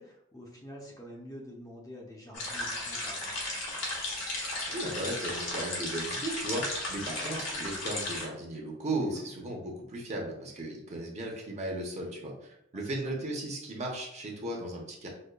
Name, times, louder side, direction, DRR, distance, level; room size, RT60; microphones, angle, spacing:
voice 1, 0.0-3.4 7.2-7.3 9.0-9.3 12.7-13.1, equal, 20° left, -2 dB, 0.6 m, -47 dB
sound 1, 2.3-8.3, left 2 dB, 75° left, 1.0 m, -35 dB
voice 2, 4.4-15.1, right 1 dB, 35° right, -1 dB, 0.7 m, -36 dB
5.1 x 2.1 x 2.2 m, 0.76 s
head